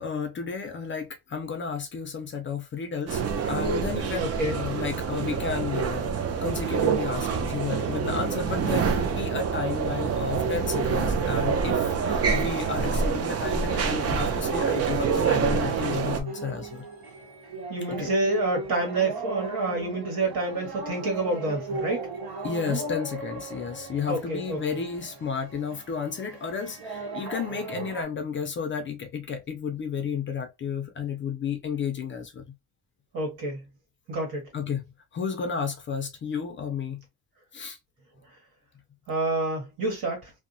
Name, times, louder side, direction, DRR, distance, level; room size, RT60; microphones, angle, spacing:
voice 1, 0.0-6.1 6.4-16.8 17.9-18.1 22.4-32.4 34.5-34.8 35.1-37.0 37.5-37.8, left 6 dB, 35° left, 0.4 m, -32 dB
sound 1, 3.1-16.2, right 6 dB, 45° right, 0.5 m, -26 dB
voice 2, 4.2-4.6 17.7-22.1 22.6-22.8 24.1-24.6 33.1-33.6 34.1-34.5 39.1-40.3, right 2 dB, 70° right, 1.5 m, -28 dB
sound 2, 16.2-28.0, right 2 dB, 85° right, 1.0 m, -37 dB
2.7 x 2.0 x 2.5 m
cardioid pair, 165°, 37 cm